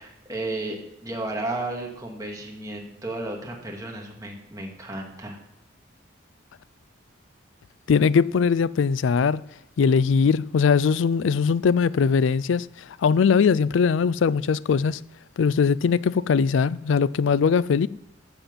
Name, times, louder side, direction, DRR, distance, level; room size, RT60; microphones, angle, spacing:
voice 1, 0.0-5.4, right 2 dB, 15° right, 2.0 m, -33 dB
voice 2, 7.9-9.4 9.8-15.0 15.4-17.9, left 6 dB, 70° left, 0.4 m, -21 dB
14.0 x 7.6 x 5.4 m
head